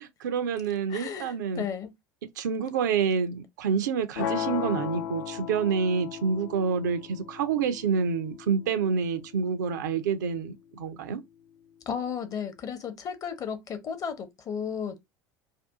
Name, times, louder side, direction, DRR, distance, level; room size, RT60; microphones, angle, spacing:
voice 1, 0.2-1.6 2.4-11.2, right 6 dB, 65° right, 0.5 m, -28 dB
voice 2, 0.9-1.9 11.9-15.0, left 7 dB, 35° left, 0.8 m, -34 dB
sound 1, 4.1-10.2, left 9 dB, 65° left, 0.5 m, -36 dB
2.6 x 2.3 x 3.5 m
figure-of-eight pair, 65°, 10 cm